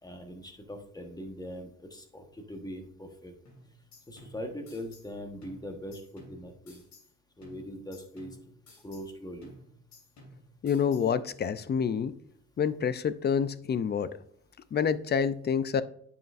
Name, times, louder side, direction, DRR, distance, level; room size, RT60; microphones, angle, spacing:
voice 1, 0.0-3.3 4.1-6.8 7.4-8.4 8.8-9.5, equal, 15° left, 4 dB, 1.3 m, -41 dB
sound 1, 3.5-5.1 5.4-7.1 7.4-9.1 9.4-11.1, left 1 dB, 65° left, 3.0 m, -55 dB
voice 2, 10.6-12.1 12.6-14.2 14.7-15.8, left 7 dB, 35° left, 15 dB, 0.5 m, -27 dB
9.1 x 5.7 x 2.5 m, 0.66 s
cardioid pair, 90°, 30 cm